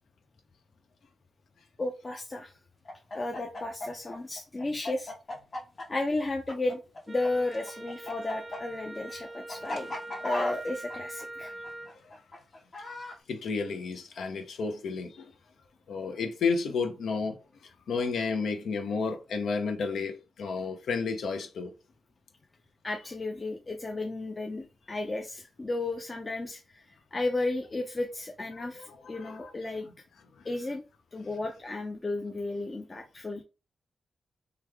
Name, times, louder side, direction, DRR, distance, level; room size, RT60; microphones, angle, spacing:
voice 1, 1.8-2.6 3.1-5.1 5.9-6.8 7.1-9.9 10.2-11.5 22.8-29.9 30.4-30.8 31.1-33.4, left 2 dB, 30° left, 0.5 m, -33 dB
Chicken rooster, 2.8-7.3 7.5-13.2, left 1 dB, 50° left, 0.9 m, -37 dB
Wind instrument woodwind instrument, 7.1-12.0, right 2 dB, 45° right, 0.4 m, -43 dB
voice 2, 13.3-15.3 15.9-21.7 24.6-24.7 28.6-29.5 30.4-30.5, left 4 dB, 80° left, 0.6 m, -32 dB
3.3 x 2.3 x 3.3 m
cardioid pair, 65°, 0 cm